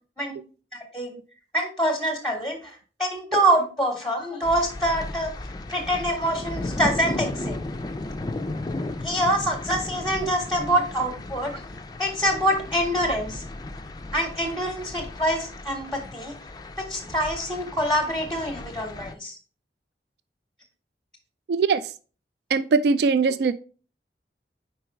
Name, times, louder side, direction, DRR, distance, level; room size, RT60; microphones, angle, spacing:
voice 1, 0.7-1.1 1.5-2.7 3.0-5.3 5.7-7.6 9.0-11.5 12.0-13.4 14.1-16.3 16.8-19.4, right 1 dB, ahead, 0.8 m, -25 dB
sound 1, 4.4-19.1, left 2 dB, 20° left, 0.3 m, -35 dB
voice 2, 21.5-21.8 22.5-23.5, right 4 dB, 70° right, 0.3 m, -21 dB
4.8 x 4.7 x 4.4 m
head